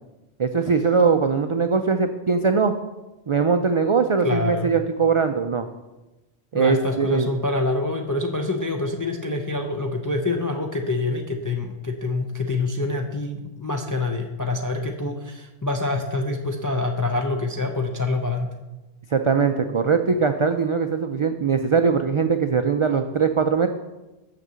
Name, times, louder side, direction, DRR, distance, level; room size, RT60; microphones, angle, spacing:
voice 1, 0.4-2.7 3.3-5.7 6.5-7.3 19.1-23.7, right 5 dB, 50° right, 7 dB, 0.3 m, -21 dB
voice 2, 4.2-4.7 6.5-18.5, left 2 dB, 25° left, 3 dB, 0.5 m, -26 dB
6.6 x 5.9 x 7.4 m, 1.1 s
omnidirectional pair, 1.1 m